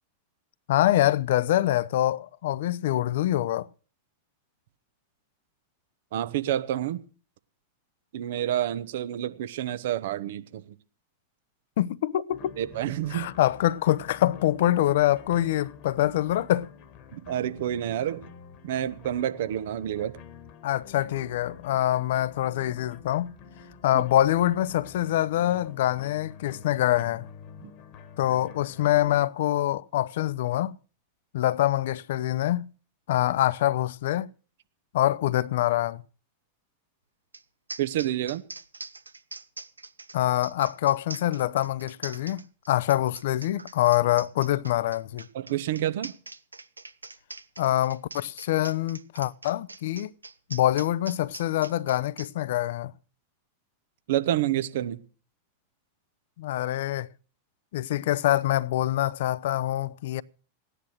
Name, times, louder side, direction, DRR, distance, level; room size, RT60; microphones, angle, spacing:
voice 1, 0.7-3.7 11.8-12.5 13.1-16.7 20.6-23.3 23.8-27.3 28.2-30.7 31.3-32.7 33.1-34.3 34.9-36.0 40.1-45.3 47.6-50.1 50.5-52.9 56.4-57.1 57.7-60.2, left 13 dB, 55° left, 0.6 m, -25 dB
voice 2, 6.1-7.0 8.1-10.6 12.6-13.3 17.1-18.3 18.6-20.2 23.9-24.0 27.6-27.7 37.8-38.4 45.3-46.2 54.1-55.0, right 12 dB, 55° right, 1.0 m, -28 dB
sound 1, 12.3-29.2, left 7 dB, 40° left, 1.4 m, -48 dB
sound 2, 37.3-37.4 37.7-52.3, right 3 dB, 80° right, 0.7 m, -43 dB
16.0 x 10.0 x 6.3 m
figure-of-eight pair, 90°, 0 cm